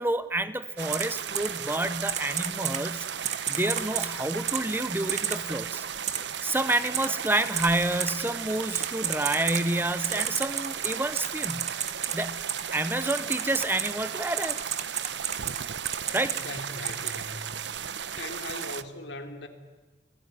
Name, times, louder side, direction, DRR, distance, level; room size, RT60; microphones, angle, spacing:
voice 1, 0.0-5.8 6.4-11.7 12.1-12.4 12.7-14.6 16.1-16.4, right 1 dB, 10° right, 13 dB, 0.9 m, -29 dB
sound 1, 0.8-18.8, right 8 dB, 70° right, 1.0 m, -35 dB
Typing, 0.9-1.0 1.3-1.5 2.1-2.8 3.2-4.1 4.5-4.6 5.1-5.4 6.1-6.2 6.9-7.1 7.6-7.7 8.0-8.1 8.7-9.6 10.0-12.1 12.5-12.6 13.1-13.9 14.4-15.6 15.9-16.4 16.8-17.2, right 9 dB, 40° right, 1.8 m, -30 dB
voice 2, 16.3-17.6 17.9-19.5, left 2 dB, 70° left, 6 dB, 3.2 m, -40 dB
29.0 x 21.0 x 9.7 m, 1.3 s
head